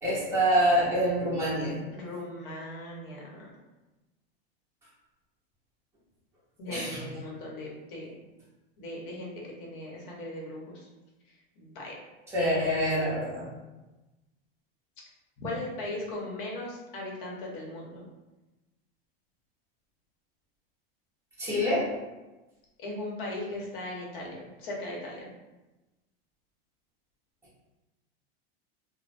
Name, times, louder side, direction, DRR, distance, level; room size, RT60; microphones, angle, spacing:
voice 1, 0.0-1.8 6.7-7.0 12.3-13.5 21.4-21.9, equal, 10° right, -10 dB, 1.0 m, -26 dB
voice 2, 1.9-3.5 6.6-8.1 8.8-10.9 11.3-12.0 12.4-12.9 15.4-18.0 22.8-25.3, left 1 dB, 60° left, -3 dB, 0.9 m, -38 dB
2.5 x 2.1 x 3.2 m, 1.1 s
supercardioid pair, 165°, 30 cm